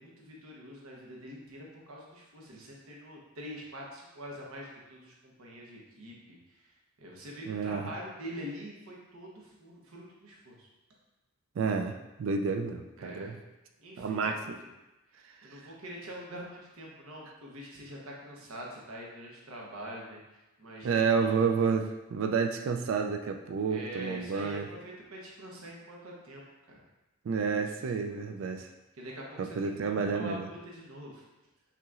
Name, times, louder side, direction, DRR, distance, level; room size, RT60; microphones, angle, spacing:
voice 1, 0.0-6.7 7.0-10.7 13.0-13.4 13.8-14.7 15.1-20.2 20.6-21.4 23.7-26.8 28.2-28.5 29.0-31.2, equal, 85° right, -2 dB, 1.0 m, -45 dB
voice 2, 7.4-7.9 11.6-13.4 14.0-14.6 15.4-15.6 20.8-24.7 27.2-28.7 29.4-30.5, right 5 dB, 65° right, 5 dB, 0.3 m, -30 dB
5.6 x 3.0 x 2.4 m, 1.0 s
head